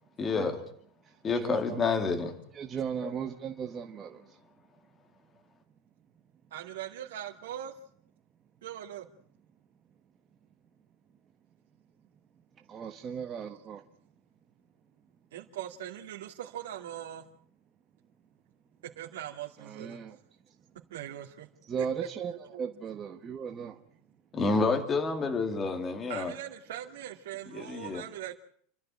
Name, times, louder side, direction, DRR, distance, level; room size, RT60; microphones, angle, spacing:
voice 1, 0.2-0.6 1.2-2.3 3.0-3.1 24.3-26.3 27.5-28.0, left 4 dB, 15° left, 2.2 m, -29 dB
voice 2, 1.4-1.8 2.6-4.2 12.7-13.8 19.7-20.2 21.7-22.3 22.6-23.8, right 7 dB, 15° right, 1.0 m, -36 dB
voice 3, 6.5-7.7 8.6-9.1 12.9-13.4 15.3-17.2 18.8-20.0 20.9-21.5 21.8-22.7 26.1-28.3, right 11 dB, 80° right, 2.4 m, -41 dB
29.5 x 13.0 x 8.9 m
supercardioid pair, 180°, 0 cm